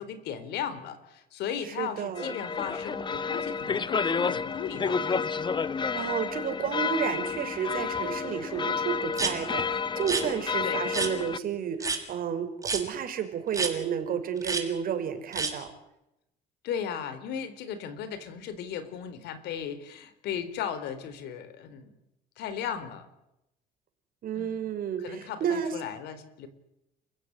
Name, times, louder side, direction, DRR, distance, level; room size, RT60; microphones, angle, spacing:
voice 1, 0.0-5.2 10.6-10.8 16.6-21.9 22.4-23.1 24.3-24.6 25.0-26.5, left 8 dB, 80° left, 12 dB, 4.1 m, -36 dB
voice 2, 1.6-2.3 5.9-15.7 24.2-25.7, right 8 dB, 60° right, 7 dB, 5.4 m, -31 dB
sound 1, 2.2-11.4, left 5 dB, 25° left, 1.1 m, -30 dB
sound 2, 9.1-9.3 10.0-10.2 10.9-11.1 11.8-12.0 12.6-12.8 13.5-13.7 14.4-14.6 15.3-15.5, right 4 dB, 20° right, 6.4 m, -29 dB
30.0 x 16.0 x 9.9 m, 0.88 s
cardioid pair, 110°, 17 cm